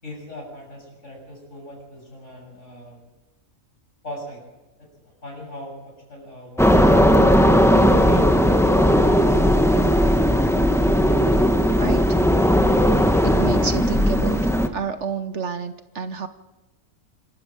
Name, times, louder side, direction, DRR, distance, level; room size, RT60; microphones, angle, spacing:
voice 1, 0.0-3.0 4.0-4.4 4.8-7.6, left 1 dB, 55° left, 0 dB, 7.6 m, -40 dB
sound 1, 6.6-14.7, equal, ahead, 1.1 m, -17 dB
voice 2, 13.2-14.4 14.7-16.3, right 5 dB, 55° right, 10 dB, 1.1 m, -29 dB
27.0 x 13.0 x 7.4 m, 1.1 s
omnidirectional pair, 1.5 m